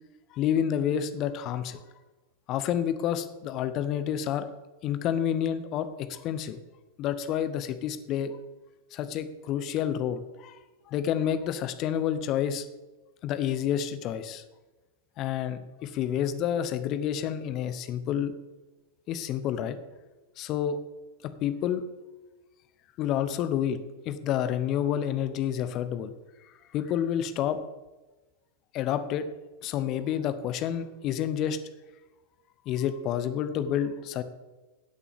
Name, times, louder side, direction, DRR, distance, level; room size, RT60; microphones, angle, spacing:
voice 1, 0.3-1.8 2.5-4.5 4.8-6.6 7.0-8.4 8.9-10.6 10.9-12.7 13.2-14.4 15.2-18.4 19.1-19.8 20.4-20.8 21.2-21.9 23.0-26.1 26.7-27.6 28.7-29.3 29.6-31.7 32.7-34.2, left 9 dB, 35° left, 12 dB, 0.8 m, -29 dB
15.0 x 8.3 x 3.6 m, 1.2 s
figure-of-eight pair, 90°, 0 cm